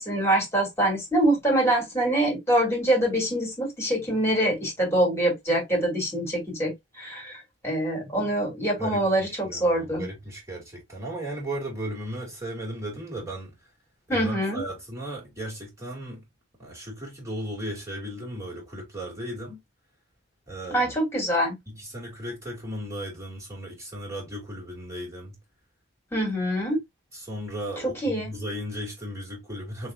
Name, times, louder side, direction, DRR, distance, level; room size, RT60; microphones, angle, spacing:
voice 1, 0.0-10.1 14.1-14.6 20.7-21.6 26.1-26.8 27.8-28.3, right 1 dB, 15° left, 2.4 m, -25 dB
voice 2, 9.5-13.5 14.1-16.2 16.6-19.6 20.5-20.9 21.7-25.4 27.1-29.9, right 1 dB, 15° right, 2.4 m, -36 dB
6.1 x 2.7 x 2.3 m
head